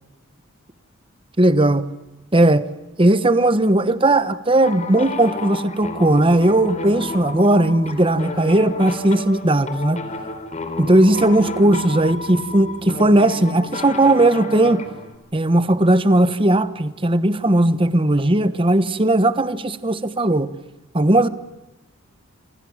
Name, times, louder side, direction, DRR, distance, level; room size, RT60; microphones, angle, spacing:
voice 1, 1.4-1.9 2.3-2.7 3.0-10.0 10.8-14.8 15.3-20.5 20.9-21.3, right 1 dB, 25° right, 13 dB, 1.2 m, -17 dB
sound 1, 4.6-15.2, left 3 dB, 35° left, 3.7 m, -31 dB
28.5 x 27.0 x 7.3 m, 0.97 s
head